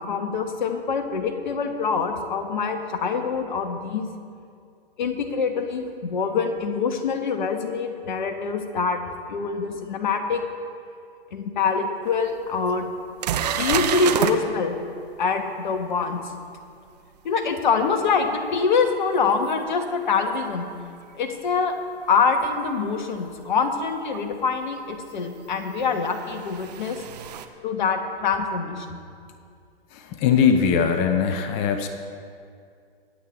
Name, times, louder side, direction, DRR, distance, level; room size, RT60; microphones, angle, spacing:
voice 1, 0.0-4.1 5.0-9.0 9.3-10.4 11.3-12.9 13.6-14.8 15.2-16.2 17.2-20.7 21.1-21.7 22.1-27.0 27.6-29.0, left 5 dB, 50° left, 6 dB, 1.4 m, -25 dB
sound 1, 12.1-12.2 12.7-12.8 13.2-14.4 19.5-19.6 22.3-22.4 24.1-24.2 25.6-27.5, right 9 dB, 40° right, 0.8 m, -28 dB
voice 2, 29.9-31.9, left 7 dB, 20° left, 7 dB, 0.6 m, -21 dB
24.0 x 8.7 x 3.2 m, 2.3 s
figure-of-eight pair, 120°, 31 cm